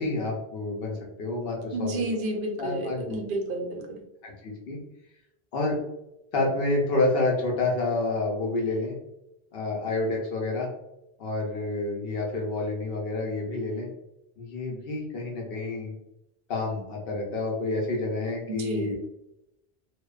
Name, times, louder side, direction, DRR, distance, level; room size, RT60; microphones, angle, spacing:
voice 1, 0.0-2.0 2.3-3.2 4.2-4.8 5.5-5.8 6.3-9.0 9.5-10.7 11.2-13.9 14.4-15.9 16.5-19.0, left 2 dB, 70° left, -1 dB, 0.8 m, -29 dB
voice 2, 1.7-4.0 18.5-18.9, right 2 dB, 65° right, 2 dB, 0.7 m, -31 dB
2.6 x 2.1 x 2.3 m, 0.87 s
omnidirectional pair, 1.0 m